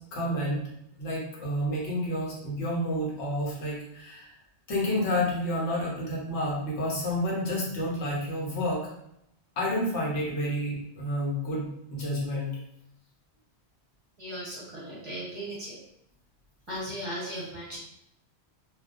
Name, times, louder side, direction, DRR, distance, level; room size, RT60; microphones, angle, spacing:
voice 1, 0.1-0.6 1.0-4.3 4.7-8.8 9.6-12.5, left 1 dB, 85° left, -5 dB, 1.1 m, -30 dB
voice 2, 14.2-15.8 16.7-17.8, equal, 35° right, -7 dB, 0.6 m, -37 dB
2.3 x 2.2 x 2.4 m, 0.77 s
omnidirectional pair, 1.1 m